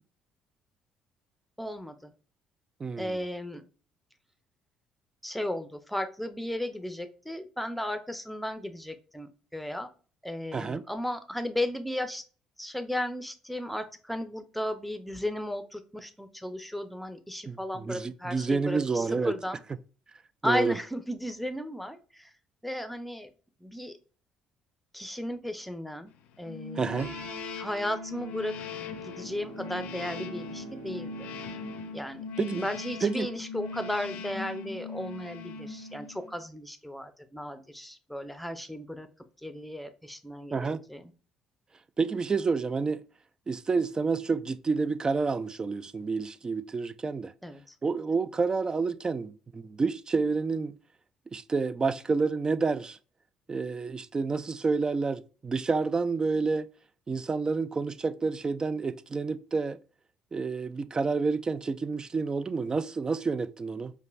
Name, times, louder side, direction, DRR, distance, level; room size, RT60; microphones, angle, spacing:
voice 1, 1.6-2.1 3.0-3.6 5.2-9.9 10.2-12.2 12.6-19.6 20.4-22.3 22.6-23.3 23.6-24.0 24.9-26.1 26.4-27.2 27.6-28.7 29.0-31.1 31.9-32.2 32.6-39.1 39.4-41.1 47.4-47.7, left 1 dB, ahead, 0.7 m, -35 dB
voice 2, 2.8-3.2 10.5-10.8 17.5-19.3 20.4-20.8 26.8-27.1 32.4-32.7 33.0-33.3 40.5-40.8 42.0-43.0 43.5-47.3 47.8-50.8 51.3-53.0 53.5-56.7 57.1-59.8 60.3-63.9, right 4 dB, 30° right, 0.3 m, -29 dB
sound 1, 26.5-36.4, left 4 dB, 70° left, 0.5 m, -40 dB
Piano, 27.0-32.9, right 5 dB, 60° right, 0.8 m, -50 dB
Bowed string instrument, 28.5-32.8, right 3 dB, 90° right, 0.5 m, -48 dB
5.1 x 2.2 x 2.5 m
hypercardioid pair, 55°, 3 cm